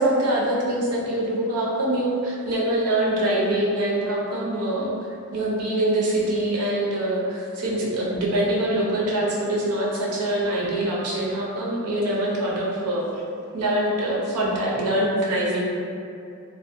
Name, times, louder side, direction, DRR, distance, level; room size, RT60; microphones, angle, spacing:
voice 1, 0.0-4.9 5.3-13.1 13.5-15.7, right 1 dB, 90° right, -4 dB, 0.6 m, -24 dB
2.6 x 2.1 x 2.5 m, 2.5 s
head